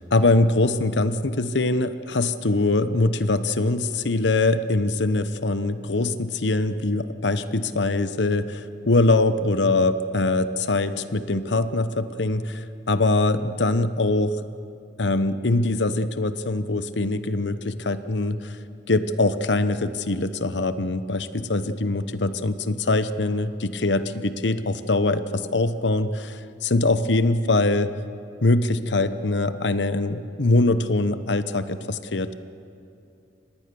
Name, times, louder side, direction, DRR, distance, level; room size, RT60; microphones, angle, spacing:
voice 1, 0.0-14.4 15.0-18.6 18.9-27.9 28.4-32.3, left 2 dB, 75° left, 12 dB, 1.0 m, -23 dB
25.5 x 19.5 x 6.9 m, 2.7 s
head